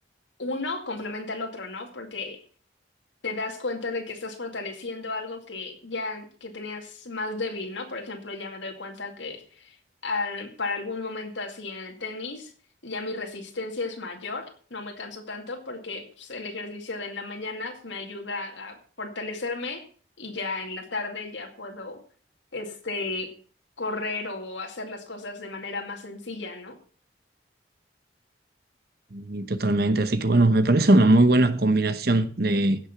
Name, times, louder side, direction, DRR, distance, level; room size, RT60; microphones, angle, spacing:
voice 1, 0.4-2.4 3.2-9.7 10.0-12.5 12.8-19.8 20.2-22.0 22.5-23.3 23.8-26.8, left 3 dB, 80° left, 2.3 m, -34 dB
voice 2, 29.1-32.8, right 2 dB, 55° right, 1.0 m, -20 dB
16.0 x 6.5 x 5.9 m
head